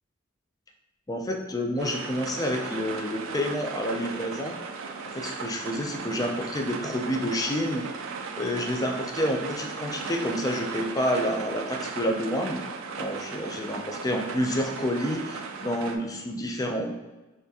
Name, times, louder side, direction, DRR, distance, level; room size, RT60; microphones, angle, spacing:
voice 1, 1.1-4.6 5.1-7.9 8.4-12.6 12.9-16.9, equal, 20° left, 3 dB, 0.4 m, -29 dB
sound 1, 1.8-16.0, right 5 dB, 85° right, 0.4 m, -36 dB
4.2 x 2.5 x 2.7 m, 1.1 s
head